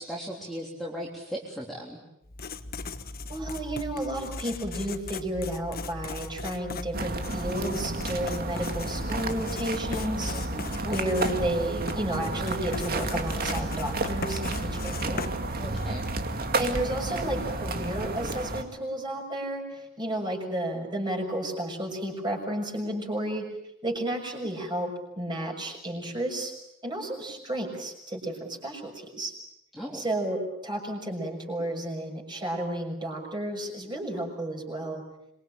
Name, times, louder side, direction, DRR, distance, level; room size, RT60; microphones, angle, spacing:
voice 1, 0.0-2.0 10.3-10.7 15.6-16.1 29.7-30.0, equal, ahead, -4 dB, 3.5 m, -37 dB
Writing, 2.2-16.1, left 3 dB, 45° left, 1.3 m, -39 dB
voice 2, 3.3-10.3 10.8-15.3 16.6-23.5 23.8-26.5 26.8-29.3 29.9-35.0, right 1 dB, 20° right, 2 dB, 6.6 m, -32 dB
sound 1, 6.9-18.6, right 2 dB, 45° right, 2.3 m, -31 dB
26.0 x 23.0 x 9.0 m, 0.80 s
head